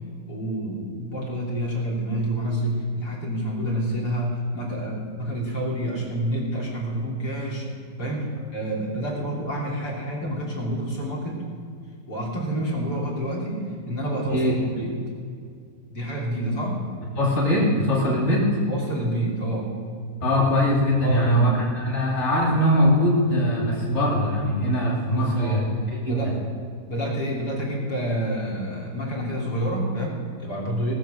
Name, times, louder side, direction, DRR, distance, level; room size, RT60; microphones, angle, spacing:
voice 1, 0.3-7.7 8.0-11.4 12.1-13.6 13.9-15.0 15.9-16.8 18.7-19.7 21.0-21.5 25.1-25.7 26.0-26.4 26.9-30.9, right 1 dB, 75° left, -2 dB, 3.8 m, -28 dB
voice 2, 17.2-18.5 20.2-25.6 26.1-26.3, equal, 40° left, -3 dB, 3.0 m, -21 dB
18.5 x 6.9 x 6.4 m, 2.3 s
omnidirectional pair, 1.8 m